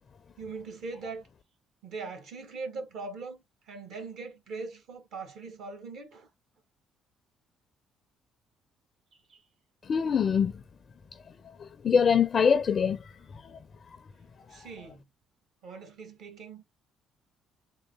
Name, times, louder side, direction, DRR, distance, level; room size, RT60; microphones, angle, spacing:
voice 1, 0.4-1.3 1.8-6.3 9.3-9.5 14.5-15.0 15.6-16.6, right 4 dB, 70° right, 1.2 m, -41 dB
voice 2, 9.9-10.5 11.6-13.1 13.4-13.6 14.5-14.7, left 6 dB, 50° left, 0.4 m, -24 dB
3.8 x 2.1 x 3.2 m
supercardioid pair, 70°, 0 cm